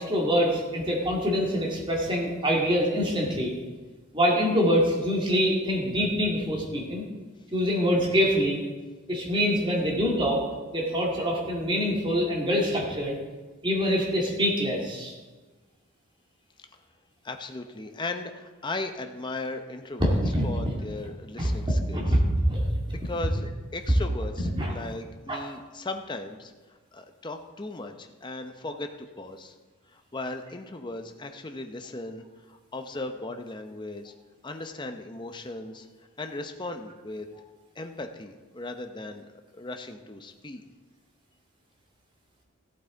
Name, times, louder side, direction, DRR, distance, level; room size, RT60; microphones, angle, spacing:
voice 1, 0.0-3.5 4.1-7.0 7.5-8.6 9.1-10.4 10.7-13.2 13.6-15.1 20.0-20.8 21.4-21.5 21.9-22.8 24.5-24.7 25.3-25.4, equal, 25° right, -2 dB, 2.1 m, -25 dB
voice 2, 17.2-22.0 22.9-26.5 26.9-28.9 29.2-29.5 29.9-34.1 34.4-35.9 36.2-37.3 37.8-40.6, left 2 dB, 20° left, 6 dB, 0.7 m, -37 dB
14.5 x 8.6 x 3.9 m, 1.3 s
head